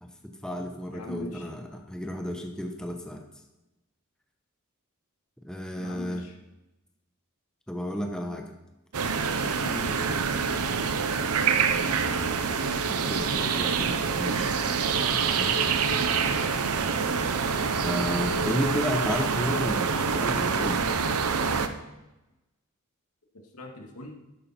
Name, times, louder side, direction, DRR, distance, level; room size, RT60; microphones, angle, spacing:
voice 1, 0.0-3.2 5.4-6.2 7.7-8.5 12.9-14.5 15.1-15.6 17.8-20.8, equal, 5° left, 2 dB, 0.9 m, -32 dB
voice 2, 0.9-1.4 5.8-6.3 9.6-10.0 23.5-24.2, left 1 dB, 85° left, 1 dB, 2.2 m, -40 dB
sound 1, 8.9-21.7, right 5 dB, 90° right, 0.8 m, -26 dB
11.5 x 10.5 x 4.4 m, 0.98 s
head